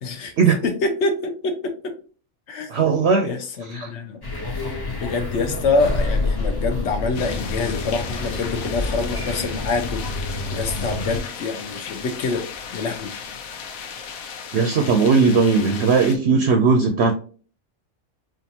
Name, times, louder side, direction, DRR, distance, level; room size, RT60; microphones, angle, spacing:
voice 1, 0.0-0.3 0.6-1.7 2.5-2.8 3.2-4.2 5.0-10.2 10.5-12.4 12.7-13.1, left 3 dB, 60° left, 5 dB, 1.1 m, -25 dB
voice 2, 2.7-3.3 3.7-3.9 14.5-17.1, right 5 dB, 65° right, 5 dB, 0.8 m, -18 dB
sound 1, 4.2-11.2, left 2 dB, 20° left, 0.7 m, -28 dB
sound 2, 7.1-16.2, left 6 dB, 85° left, 1.1 m, -35 dB
5.5 x 2.5 x 2.7 m, 0.39 s
omnidirectional pair, 1.4 m